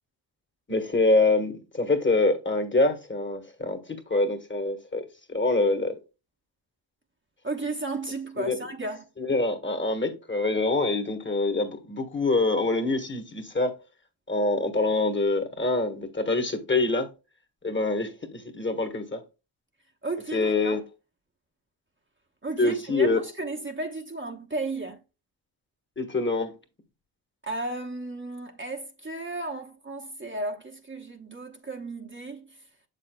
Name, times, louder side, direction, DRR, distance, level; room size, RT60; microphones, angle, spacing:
voice 1, 0.7-5.9 8.4-8.6 9.2-13.7 14.3-17.1 17.6-19.2 20.3-20.8 22.6-23.2 26.0-26.5, left 2 dB, 25° left, 1.4 m, -25 dB
voice 2, 7.4-9.1 20.0-20.8 22.4-25.0 27.5-32.4, right 2 dB, 25° right, 1.0 m, -34 dB
7.1 x 6.8 x 2.2 m
supercardioid pair, 50°, 49 cm